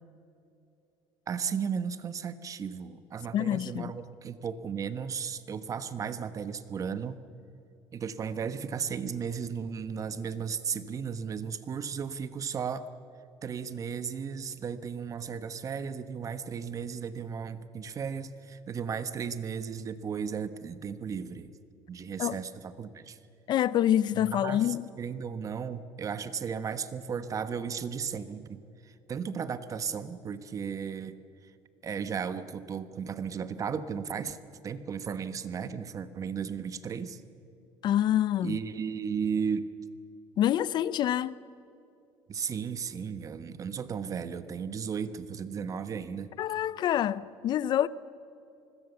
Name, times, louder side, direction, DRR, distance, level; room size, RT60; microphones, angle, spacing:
voice 1, 1.3-7.2 7.9-12.9 13.4-21.5 21.9-23.2 24.1-31.2 31.8-34.4 34.6-37.2 38.4-39.7 42.3-46.3, right 6 dB, 35° right, 1.3 m, -35 dB
voice 2, 3.3-3.9 22.2-22.4 23.5-24.8 37.8-38.6 40.4-41.4 46.4-47.9, left 11 dB, 50° left, 0.6 m, -26 dB
27.5 x 21.0 x 7.1 m
cardioid pair, 115°, 10 cm